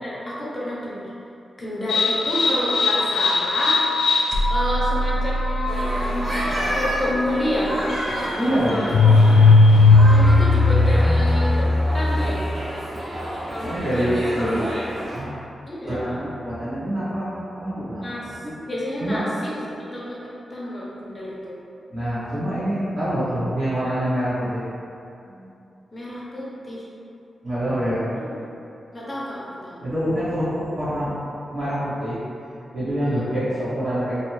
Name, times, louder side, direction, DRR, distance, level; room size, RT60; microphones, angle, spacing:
voice 1, 0.0-1.1 1.6-3.8 4.5-7.9 8.4-8.9 10.1-11.7 11.9-12.4 13.5-14.5 15.7-16.2 18.0-18.4 18.7-20.2 20.5-21.6 25.9-26.8 28.2-28.3 28.9-29.8 33.1-33.3, equal, 20° left, -7 dB, 0.6 m, -30 dB
sound 1, 1.9-12.5, left 3 dB, 85° left, 0.3 m, -18 dB
sound 2, 5.6-15.2, equal, 30° right, 1.0 m, -30 dB
voice 2, 8.4-9.1 13.1-14.7 15.1-15.3 15.8-18.5 19.0-19.2 21.9-24.6 25.2-25.5 27.4-28.0 29.8-31.2 31.5-32.2 32.7-34.1, equal, 80° right, -18 dB, 1.4 m, -26 dB
3.0 x 2.4 x 3.1 m, 2.7 s
wide cardioid pair, 165°, 0 cm